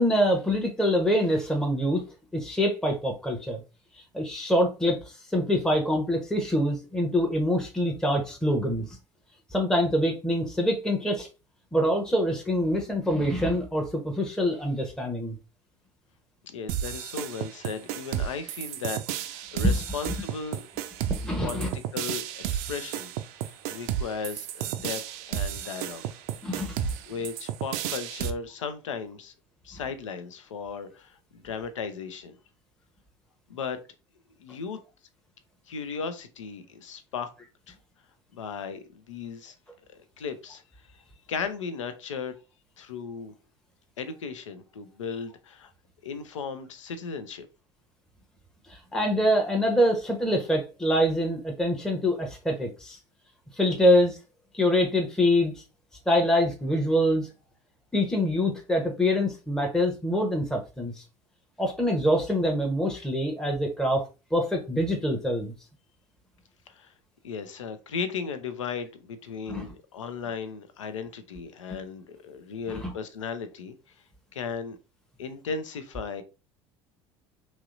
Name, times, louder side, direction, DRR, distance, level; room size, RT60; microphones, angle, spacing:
voice 1, 0.0-2.0 2.3-3.6 4.1-9.0 9.5-11.3 11.7-15.4 21.0-21.7 26.4-26.7 48.7-53.0 53.5-54.2 54.5-55.6 56.1-57.3 57.9-61.0 61.6-64.0 64.3-65.5 69.5-69.7 72.8-72.9, equal, 5° left, 0.7 m, -25 dB
voice 2, 16.5-20.7 21.4-23.1 23.7-25.0 25.3-26.1 27.1-29.3 29.6-32.4 33.5-33.8 34.4-34.8 35.7-37.3 37.7-37.8 38.3-39.6 39.9-40.6 40.9-41.0 41.3-42.3 42.8-43.3 44.0-45.7 46.0-47.5 66.7-66.9 67.2-73.7 74.3-74.8 75.2-76.2, left 5 dB, 80° left, 0.5 m, -36 dB
sound 1, 16.7-28.3, right 11 dB, 60° right, 0.4 m, -32 dB
3.0 x 2.7 x 2.5 m
hypercardioid pair, 70°, 16 cm